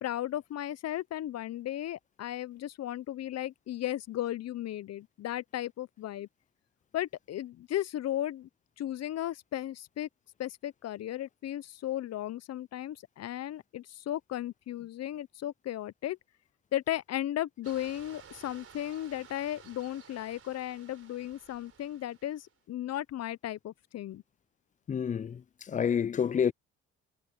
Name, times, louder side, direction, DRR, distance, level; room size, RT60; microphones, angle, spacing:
voice 1, 0.0-6.3 6.9-8.5 8.8-10.1 10.4-16.2 16.7-24.2, left 12 dB, 55° left, 0.7 m, -35 dB
sound 1, 17.6-22.5, right 7 dB, 50° right, 3.8 m, -54 dB
voice 2, 24.9-25.4 25.7-26.5, left 7 dB, 25° left, 0.4 m, -28 dB
cardioid pair, 90°, 30 cm